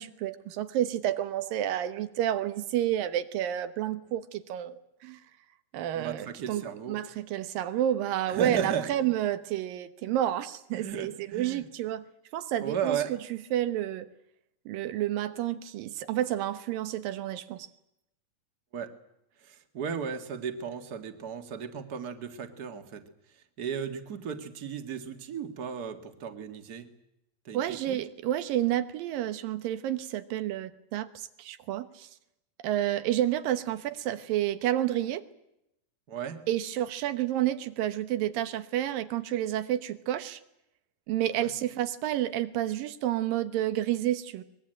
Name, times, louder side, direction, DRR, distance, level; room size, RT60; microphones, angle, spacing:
voice 1, 0.0-5.2 5.7-6.6 6.9-12.0 12.3-13.0 13.3-14.1 14.7-17.7 27.5-32.1 32.6-35.2 36.5-40.4 41.1-44.4, right 12 dB, 90° right, 12 dB, 2.9 m, -30 dB
voice 2, 5.9-7.0 8.3-8.9 10.7-11.6 12.6-13.1 18.7-18.9 19.4-23.0 23.6-26.9 27.5-28.0 36.1-36.4 41.3-41.5, right 7 dB, 35° right, 7 dB, 1.8 m, -35 dB
23.5 x 21.0 x 9.0 m, 0.83 s
omnidirectional pair, 3.9 m